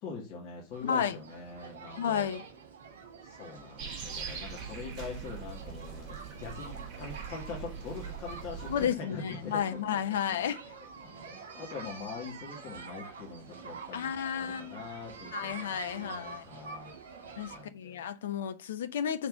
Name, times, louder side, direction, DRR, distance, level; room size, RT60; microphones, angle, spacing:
voice 1, 0.0-2.3 3.2-10.4 11.0-17.0 17.5-18.0, left 4 dB, 40° left, 2.1 m, -43 dB
sound 1, 0.7-17.6, right 5 dB, 60° right, 1.9 m, -47 dB
voice 2, 0.8-1.2 1.9-2.4 8.7-10.6 13.9-14.8 15.3-16.4 17.4-19.3, left 8 dB, 60° left, 0.8 m, -32 dB
sound 2, 3.8-8.9, right 7 dB, 35° right, 3.0 m, -42 dB
5.9 x 4.2 x 5.3 m
figure-of-eight pair, 90°, 0 cm